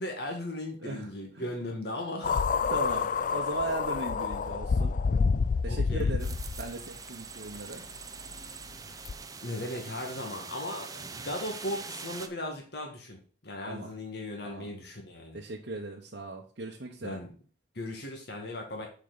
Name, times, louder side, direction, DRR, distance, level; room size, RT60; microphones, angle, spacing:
voice 1, 0.0-2.4 5.7-6.1 8.8-9.0 9.4-13.2 13.4-15.4 17.0-17.3 17.8-18.9, left 1 dB, 65° left, 1 dB, 1.8 m, -37 dB
Wind long, 2.2-6.7 7.5-7.6 9.0-9.1, left 5 dB, 45° left, 0.4 m, -28 dB
voice 2, 2.7-5.0 5.6-7.8 13.6-13.9 14.4-14.7 15.3-17.2, right 2 dB, 70° right, -1 dB, 1.1 m, -38 dB
sound 1, 6.2-12.3, right 5 dB, 20° right, 0.6 m, -43 dB
7.0 x 5.9 x 3.9 m, 0.40 s
head